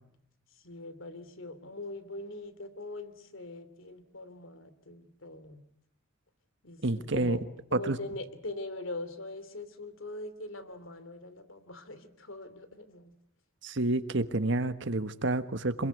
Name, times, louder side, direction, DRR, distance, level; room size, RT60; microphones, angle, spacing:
voice 1, 0.6-5.6 6.6-7.4 7.7-13.1, left 2 dB, 75° left, 12 dB, 3.0 m, -42 dB
voice 2, 6.8-7.4 7.7-8.0 13.6-15.9, right 2 dB, 60° right, 11 dB, 1.5 m, -29 dB
27.0 x 22.5 x 9.4 m, 0.72 s
head